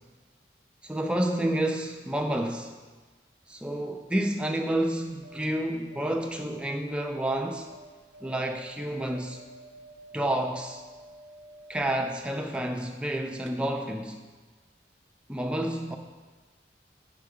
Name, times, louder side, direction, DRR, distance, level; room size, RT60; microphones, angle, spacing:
voice 1, 0.8-2.7 3.5-7.7 8.2-9.4 10.1-10.8 11.7-14.2 15.3-16.0, right 1 dB, 5° right, 3 dB, 0.3 m, -29 dB
sound 1, 5.0-13.1 13.4-13.5, right 2 dB, 90° right, 0.4 m, -51 dB
5.2 x 4.7 x 4.7 m, 1.3 s
head